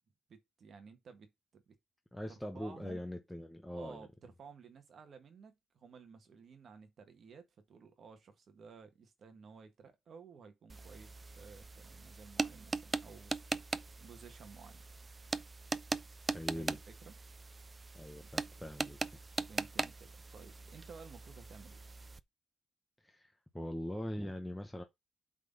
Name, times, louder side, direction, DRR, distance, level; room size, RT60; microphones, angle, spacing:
voice 1, 0.3-1.6 2.3-3.0 3.7-13.6 14.0-15.1 16.6-17.1 19.5-21.8, right 5 dB, 50° right, 1.7 m, -55 dB
voice 2, 2.1-4.1 16.3-16.8 17.9-19.2 23.0-24.8, left 1 dB, 5° left, 0.9 m, -42 dB
sound 1, 10.7-22.2, right 3 dB, 20° right, 0.4 m, -41 dB
8.1 x 4.0 x 5.4 m
wide cardioid pair, 170°, 0 cm